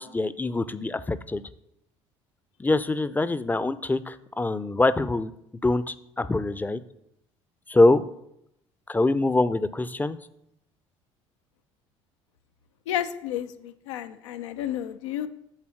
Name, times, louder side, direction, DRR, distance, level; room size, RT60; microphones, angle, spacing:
voice 1, 0.0-1.4 2.6-5.3 5.6-6.8 7.7-8.0 8.9-10.2, left 2 dB, 10° left, 14 dB, 0.5 m, -24 dB
voice 2, 12.9-15.3, left 11 dB, 80° left, 11 dB, 0.6 m, -31 dB
7.3 x 4.1 x 6.3 m, 0.78 s
hypercardioid pair, 65°, 15 cm